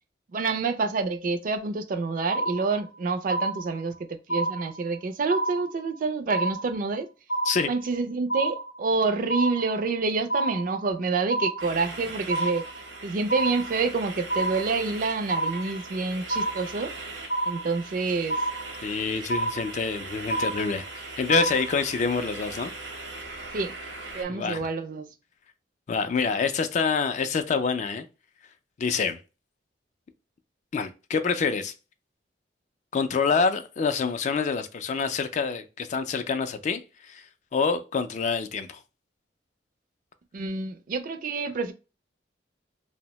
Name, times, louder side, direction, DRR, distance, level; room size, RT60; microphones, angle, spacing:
voice 1, 0.3-7.1 7.7-12.6 13.0-16.9 17.5-18.4 23.5-23.7 24.1-25.1 40.3-41.7, right 4 dB, 50° right, 0.4 m, -28 dB
sound 1, 2.3-3.0 3.3-4.0 4.3-5.0 5.3-6.0 6.3-7.0 7.3-8.0 8.3-9.0 9.3-10.0 10.3-11.0 11.3-12.0 12.3-13.0 13.3-14.0 14.3-15.0 15.3-16.0 16.3-17.0 17.3-18.0 18.3-19.0 19.3-20.0 20.3-21.0 21.3-22.0, right 2 dB, 80° left, 0.6 m, -29 dB
sound 2, 11.6-24.2, right 3 dB, 85° right, 0.8 m, -40 dB
voice 2, 18.8-22.7 24.3-24.7 25.9-28.0 28.8-29.2 30.7-31.7 32.9-37.3 37.5-38.8, left 5 dB, 40° left, 0.3 m, -26 dB
2.6 x 2.1 x 2.9 m
head